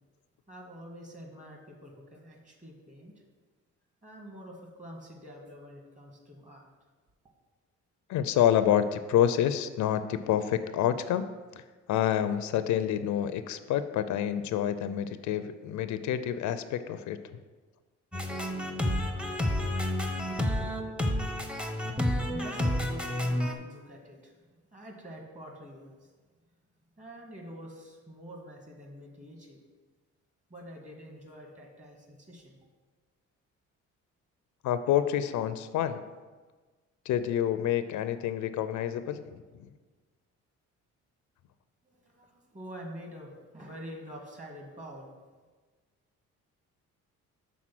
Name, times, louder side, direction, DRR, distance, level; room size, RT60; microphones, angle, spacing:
voice 1, 0.5-3.1 4.0-6.6 21.7-21.8 22.0-24.4 24.7-25.9 27.0-29.6 30.5-32.6 41.8-45.1, equal, 25° right, 1 dB, 1.6 m, -46 dB
voice 2, 8.1-11.2 11.9-17.2 34.6-36.0 37.1-39.4, left 10 dB, 75° left, 11 dB, 0.5 m, -28 dB
sound 1, 18.1-23.5, left 1 dB, 5° right, 0.7 m, -30 dB
6.1 x 3.9 x 6.0 m, 1.4 s
cardioid pair, 90°, 30 cm